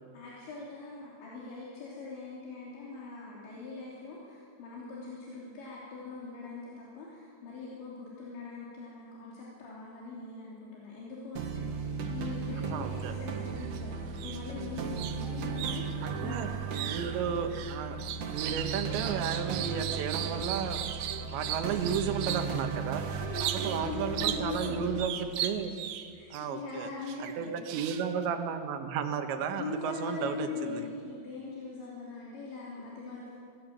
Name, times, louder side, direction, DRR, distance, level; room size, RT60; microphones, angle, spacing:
voice 1, 0.1-11.7 12.1-15.9 16.2-16.4 16.8-17.0 23.2-24.9 26.1-27.7 29.6-33.3, left 3 dB, 80° left, -6 dB, 5.5 m, -41 dB
sound 1, 11.4-25.1, right 5 dB, 55° right, 2.5 m, -36 dB
voice 2, 12.7-13.2 16.0-16.5 16.9-18.0 18.3-25.8 26.3-26.9 27.2-30.8, right 7 dB, 90° right, 6 dB, 3.6 m, -34 dB
sound 2, 13.5-13.8 14.1-22.6 23.3-23.9 24.1-26.4 27.1-28.2, right 11 dB, 70° right, 2.5 m, -37 dB
24.5 x 18.5 x 7.7 m, 2.2 s
omnidirectional pair, 5.1 m